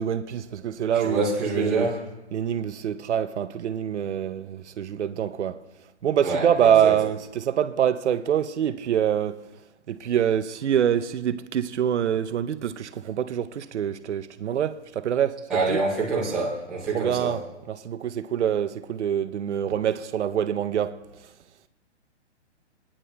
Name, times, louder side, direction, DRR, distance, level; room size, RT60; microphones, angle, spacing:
voice 1, 0.0-1.2 1.6-1.9 2.3-5.6 6.0-9.4 9.9-15.8 16.9-21.0, right 9 dB, 75° right, 0.7 m, -25 dB
voice 2, 1.0-2.0 6.2-6.5 6.8-6.9 15.5-17.3, right 3 dB, ahead, 0.5 m, -26 dB
24.5 x 9.8 x 2.2 m
hypercardioid pair, 165°, 35 cm